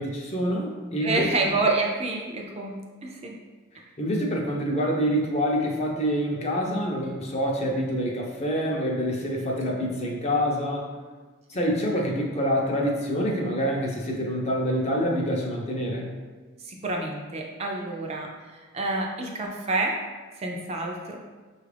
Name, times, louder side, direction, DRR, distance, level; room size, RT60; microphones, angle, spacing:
voice 1, 0.0-1.3 4.0-10.9 11.5-16.1, equal, 30° left, -1 dB, 0.6 m, -26 dB
voice 2, 1.0-3.3 16.6-20.0 20.4-21.2, right 2 dB, 30° right, 0 dB, 0.4 m, -28 dB
5.6 x 2.4 x 3.3 m, 1.4 s
head